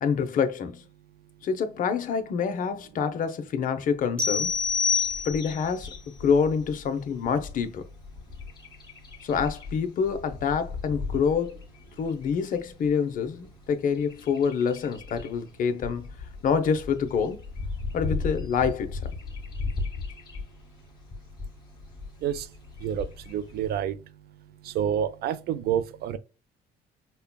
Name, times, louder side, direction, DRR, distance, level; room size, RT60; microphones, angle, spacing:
voice 1, 0.0-0.8 1.4-4.5 5.2-5.9 6.2-7.8 9.2-11.6 12.0-16.1 16.4-17.4 17.9-19.0, left 6 dB, 55° left, 0.7 m, -26 dB
sound 1, 4.2-5.7, left 5 dB, 5° left, 1.0 m, -26 dB
Bird vocalization bird call bird song, 4.4-23.8, left 3 dB, 25° left, 1.6 m, -39 dB
voice 2, 22.8-24.0 24.7-26.2, right 9 dB, 70° right, 0.5 m, -28 dB
5.4 x 2.2 x 2.2 m
cardioid pair, 110°, 17 cm